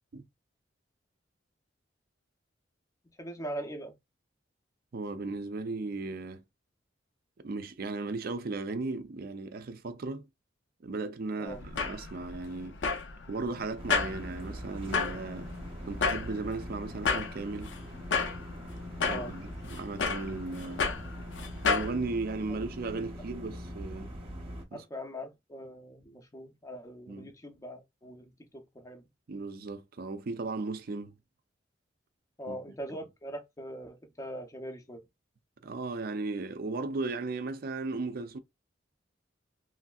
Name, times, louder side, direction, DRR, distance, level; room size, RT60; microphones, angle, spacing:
voice 1, 3.2-3.9 11.4-11.6 19.1-19.3 24.7-29.0 32.4-35.0, equal, 15° left, 0.5 m, -41 dB
voice 2, 4.9-6.4 7.4-10.2 10.8-12.8 13.3-15.5 15.9-17.7 19.1-20.9 21.6-24.1 24.7-24.8 27.1-27.3 29.3-31.1 32.5-32.6 35.6-38.4, right 3 dB, 50° right, 0.4 m, -36 dB
sound 1, 11.5-21.9, left 5 dB, 70° left, 0.6 m, -33 dB
sound 2, 13.8-24.7, equal, 30° right, 0.8 m, -42 dB
3.1 x 2.6 x 2.3 m
head